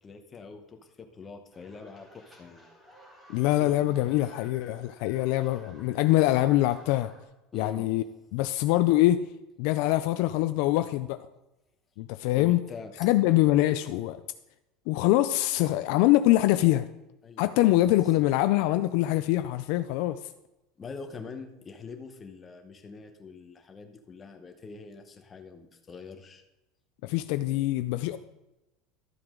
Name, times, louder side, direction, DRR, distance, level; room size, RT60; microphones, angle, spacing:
voice 1, 0.0-2.6 3.6-4.1 7.5-7.9 12.4-12.9 17.2-17.9 20.8-26.4 28.1-28.2, left 4 dB, 15° left, 5 dB, 1.0 m, -44 dB
sound 1, 1.5-7.2, left 1 dB, 10° right, 2.1 m, -55 dB
voice 2, 3.3-7.1 7.5-8.0 8.3-9.2 9.6-11.2 12.0-12.6 13.0-14.2 14.9-16.9 17.4-20.2 27.0-28.2, left 16 dB, 60° left, 11 dB, 0.4 m, -24 dB
12.5 x 7.7 x 3.8 m, 0.94 s
cardioid pair, 165°, 0 cm